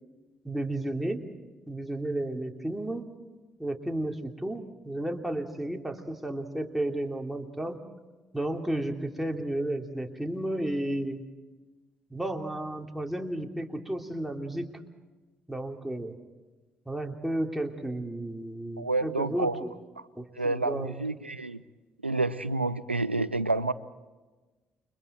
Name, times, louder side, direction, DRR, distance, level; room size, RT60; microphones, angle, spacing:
voice 1, 0.4-1.3 1.7-3.1 3.6-7.8 8.3-11.2 12.1-14.7 15.5-16.2 16.9-19.7 20.1-21.0, right 1 dB, 5° right, 2 dB, 3.0 m, -33 dB
voice 2, 18.8-19.6 20.4-21.6 22.0-23.7, right 2 dB, 90° right, 17 dB, 0.6 m, -29 dB
29.5 x 24.0 x 4.4 m, 1.2 s
figure-of-eight pair, 45°, 6 cm